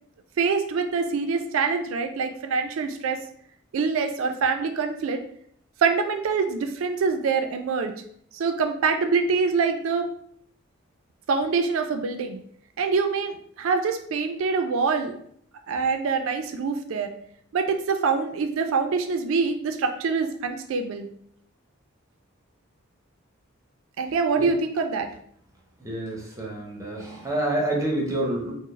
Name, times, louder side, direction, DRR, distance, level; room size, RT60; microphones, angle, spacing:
voice 1, 0.4-3.2 3.7-5.2 5.8-7.9 8.3-10.1 11.3-12.4 12.8-15.1 15.7-17.1 17.5-21.1 24.0-25.1, right 5 dB, 75° right, 6 dB, 0.3 m, -25 dB
voice 2, 25.8-28.5, right 1 dB, 15° right, -1 dB, 0.6 m, -28 dB
4.4 x 2.0 x 3.1 m, 0.65 s
head